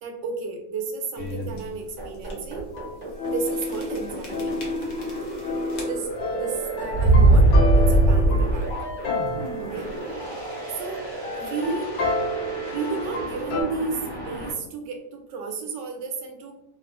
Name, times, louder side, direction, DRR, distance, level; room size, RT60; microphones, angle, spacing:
voice 1, 0.0-2.7 3.2-4.6 5.9-8.7 9.6-9.9 10.7-11.1 11.3-12.0 12.7-16.5, right 4 dB, 80° right, 3 dB, 1.2 m, -32 dB
sound 1, 1.2-1.6 2.2-2.3 2.6-2.7 3.6-4.0 4.2-5.4 5.7-6.2 6.9-8.9, right 2 dB, 55° left, 0.7 m, -18 dB
sound 2, 2.0-14.5, right 1 dB, 40° right, 0.8 m, -35 dB
sound 3, 2.7-13.6, left 1 dB, 80° left, 1.3 m, -31 dB
3.2 x 2.0 x 2.5 m, 0.81 s
omnidirectional pair, 1.9 m